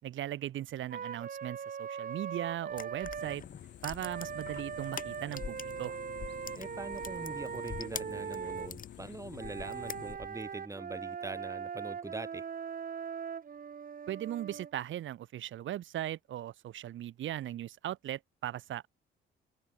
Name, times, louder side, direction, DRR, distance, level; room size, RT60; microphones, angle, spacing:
voice 1, 0.0-3.4 3.8-6.0 14.1-18.9, right 12 dB, 75° right, 3.3 m, -38 dB
Wind instrument woodwind instrument, 0.9-3.4 4.0-8.7 9.3-14.7, right 7 dB, 45° right, 2.0 m, -40 dB
sound 1, 2.7-5.9 6.1-8.9 9.4-10.5, left 6 dB, 45° left, 2.8 m, -44 dB
sound 2, 3.2-10.2, left 11 dB, 65° left, 1.4 m, -49 dB
voice 2, 6.6-12.5, right 2 dB, 15° right, 2.0 m, -43 dB
cardioid pair, 90°, 20 cm